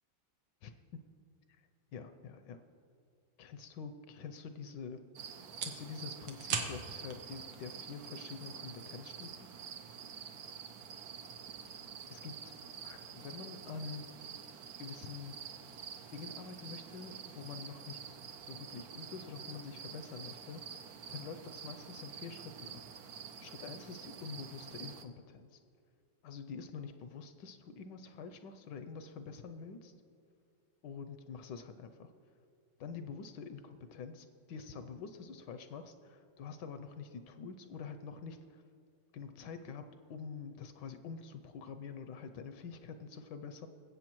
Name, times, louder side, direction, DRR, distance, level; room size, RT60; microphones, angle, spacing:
voice 1, 0.6-1.0 1.9-2.6 3.4-5.0 5.6-9.5 12.1-12.6 12.8-14.0 14.8-15.3 16.1-22.8 23.4-25.6 26.2-29.9 30.8-32.1 32.8-38.6 39.1-39.8 40.1-43.7, left 5 dB, 75° left, 9 dB, 1.2 m, -46 dB
sound 1, 4.4-17.6, right 6 dB, 90° right, 1.7 m, -48 dB
sound 2, 5.2-25.0, right 7 dB, 65° right, 1.0 m, -48 dB
20.5 x 8.1 x 3.0 m, 2.3 s
omnidirectional pair, 2.1 m